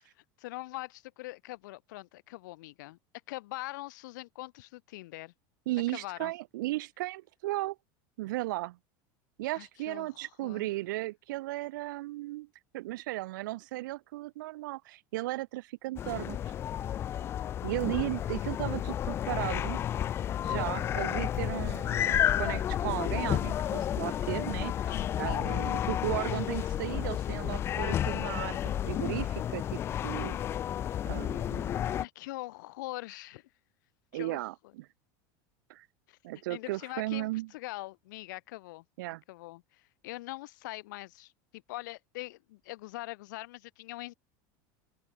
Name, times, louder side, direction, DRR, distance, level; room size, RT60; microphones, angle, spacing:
voice 1, 0.4-3.0 3.3-5.3 5.9-6.3 9.5-10.7 24.9-25.8 32.0-33.5 34.1-34.5 36.1-36.2 36.5-38.8 39.3-44.1, left 19 dB, 75° left, 4.2 m, -43 dB
voice 2, 5.7-7.8 8.2-8.8 9.4-12.5 12.7-16.4 17.6-19.8 20.4-24.9 25.2-30.4 31.0-31.8 34.1-34.8 35.7-35.9 36.2-37.5 39.0-39.2, right 18 dB, 80° right, 5.6 m, -35 dB
sound 1, 16.0-32.0, left 10 dB, 25° left, 0.6 m, -31 dB
open air
supercardioid pair, 165°, 10 cm